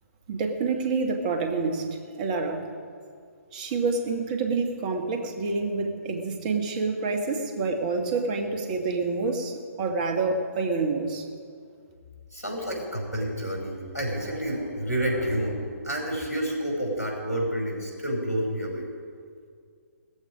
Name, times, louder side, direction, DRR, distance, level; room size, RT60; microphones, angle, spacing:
voice 1, 0.3-1.9 2.1-2.6 3.5-11.2, right 4 dB, 30° right, 5 dB, 1.7 m, -27 dB
voice 2, 12.3-18.9, equal, 80° left, 0 dB, 5.5 m, -29 dB
18.0 x 14.5 x 5.1 m, 2.2 s
figure-of-eight pair, 130°, 8 cm